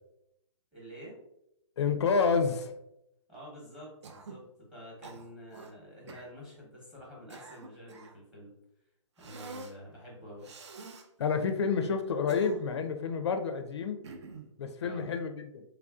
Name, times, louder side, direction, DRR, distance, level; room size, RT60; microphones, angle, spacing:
voice 1, 0.7-1.2 3.3-8.5 9.2-10.5 14.8-15.0, equal, 5° right, -4 dB, 0.8 m, -48 dB
voice 2, 1.8-2.7 11.2-14.0 14.6-15.6, left 5 dB, 60° left, 7 dB, 0.4 m, -29 dB
Cough, 4.0-4.5 5.0-5.7 6.1-6.3 7.0-8.2 9.2-9.8 10.4-11.1 12.0-12.9 14.0-14.5, right 4 dB, 65° right, 0.5 m, -47 dB
3.2 x 2.5 x 2.3 m, 0.82 s
hypercardioid pair, 145°, 16 cm